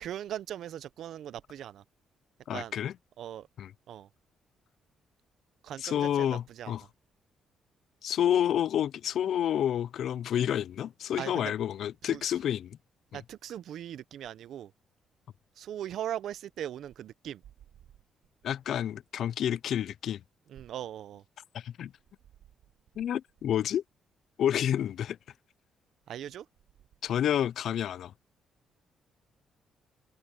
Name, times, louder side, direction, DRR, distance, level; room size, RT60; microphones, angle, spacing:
voice 1, 0.0-1.8 2.5-2.7 3.2-3.5 3.9-4.1 5.6-6.7 11.2-11.5 12.0-12.2 13.1-14.7 15.6-17.4 20.5-21.2 26.1-26.4, right 11 dB, 70° right, 0.6 m, -39 dB
voice 2, 2.5-2.9 3.6-3.7 5.8-6.8 8.0-12.8 13.1-13.2 18.4-20.2 21.5-21.9 23.0-23.8 24.4-25.2 27.0-28.1, left 10 dB, 70° left, 0.4 m, -29 dB
cardioid pair, 90°, 0 cm